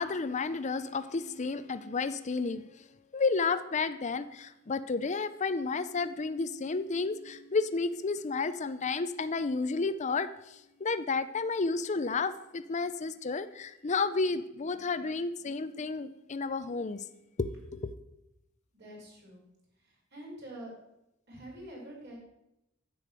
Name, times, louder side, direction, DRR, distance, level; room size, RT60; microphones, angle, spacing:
voice 1, 0.0-2.8 3.1-17.0 17.4-17.9, left 4 dB, 35° left, 11 dB, 0.5 m, -32 dB
voice 2, 18.7-19.4 19.8-20.7 21.3-22.1, right 1 dB, 55° right, -3 dB, 5.2 m, -46 dB
10.0 x 8.5 x 6.3 m, 0.87 s
head